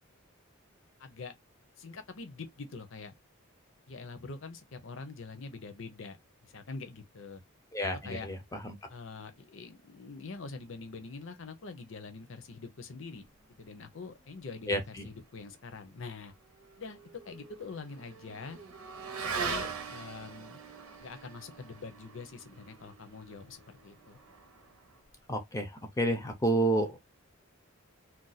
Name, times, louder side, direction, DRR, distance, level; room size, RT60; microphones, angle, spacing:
voice 1, 1.0-1.3 1.8-3.1 3.9-6.2 6.4-7.4 7.9-8.3 8.9-13.3 13.6-16.3 16.8-17.0 17.2-18.6 19.3-20.6 21.0-24.2, left 4 dB, 60° left, 0.6 m, -44 dB
voice 2, 7.7-8.8 14.7-15.1 25.3-27.0, right 1 dB, 15° left, 0.5 m, -30 dB
Motorcycle / Accelerating revving vroom, 16.3-25.1, right 5 dB, 85° right, 0.8 m, -42 dB
2.5 x 2.2 x 4.0 m
head